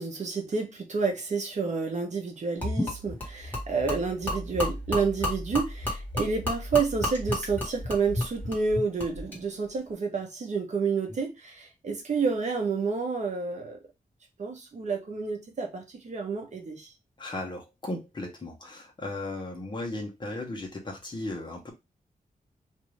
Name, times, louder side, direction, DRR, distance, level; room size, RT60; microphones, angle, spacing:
voice 1, 0.0-13.8 14.4-16.9, right 4 dB, 50° right, 0.8 m, -29 dB
Gurgling / Liquid, 2.6-9.4, left 1 dB, 10° left, 1.4 m, -32 dB
voice 2, 17.2-21.7, left 2 dB, 30° left, 0.9 m, -36 dB
2.6 x 2.5 x 3.1 m
wide cardioid pair, 155°, 15 cm